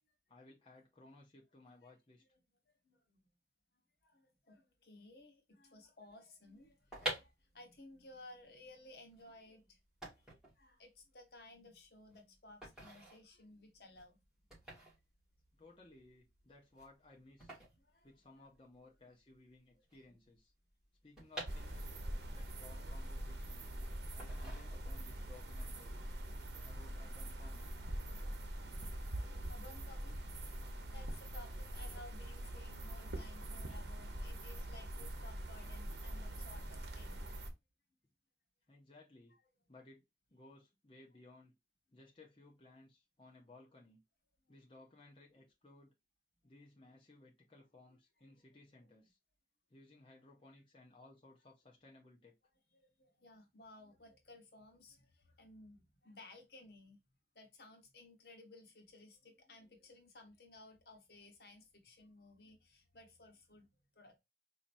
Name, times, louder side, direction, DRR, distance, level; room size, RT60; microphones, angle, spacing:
voice 1, 0.3-2.2 15.5-17.6 18.0-20.5 21.0-21.9 22.3-23.7 24.1-26.0 26.6-27.8 38.7-39.4 39.7-40.0 40.3-41.5 41.9-44.0 44.5-45.9 46.4-49.2 49.7-52.4, left 2 dB, 30° left, 0.7 m, -60 dB
voice 2, 2.8-3.3 4.0-9.8 10.5-14.2 17.8-18.1 20.1-20.2 28.8-29.1 29.5-30.3 30.5-37.3 48.2-48.5 52.7-57.0 57.3-63.7 63.9-64.2, left 2 dB, 65° left, 1.1 m, -58 dB
sound 1, 6.7-18.8 19.1-19.2 19.3-22.2 22.6-23.6 24.2-25.2 25.5-25.8, right 1 dB, 5° right, 2.2 m, -49 dB
sound 2, 21.5-37.5, right 1 dB, 80° right, 0.9 m, -44 dB
4.2 x 2.9 x 2.5 m
head